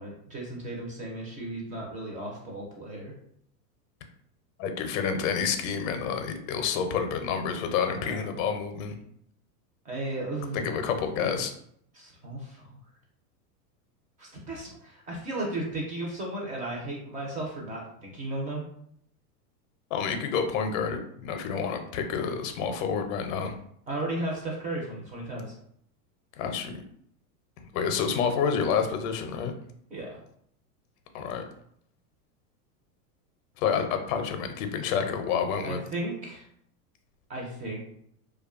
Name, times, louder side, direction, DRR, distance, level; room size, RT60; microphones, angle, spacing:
voice 1, 0.0-3.1 7.9-8.4 9.8-10.7 11.2-11.3 11.9-12.8 14.2-18.6 23.9-25.5 29.9-30.1 35.6-36.4 37.3-37.8, right 1 dB, 15° right, -2 dB, 0.5 m, -35 dB
voice 2, 4.6-8.9 10.5-11.5 19.9-23.5 26.4-26.8 27.7-29.5 31.1-31.4 33.6-35.8, left 6 dB, 60° left, 6 dB, 0.5 m, -29 dB
2.5 x 2.3 x 2.4 m, 0.68 s
supercardioid pair, 140°, 47 cm